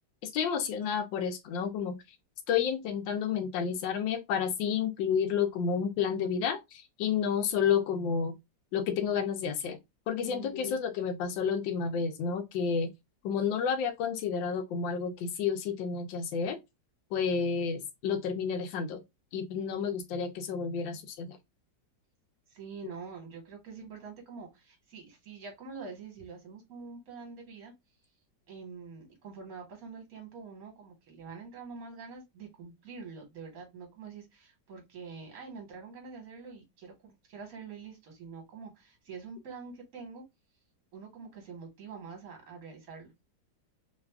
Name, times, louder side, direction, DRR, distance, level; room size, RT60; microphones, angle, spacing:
voice 1, 0.2-2.0 2.5-8.3 8.7-9.8 10.1-12.9 13.2-16.6 17.1-19.0 19.3-21.4, left 7 dB, 90° left, 1.4 m, -30 dB
voice 2, 7.2-7.6 10.2-10.8 22.5-27.7 28.5-40.2 40.9-43.1, right 5 dB, 50° right, 1.6 m, -46 dB
3.4 x 2.3 x 3.2 m
omnidirectional pair, 2.0 m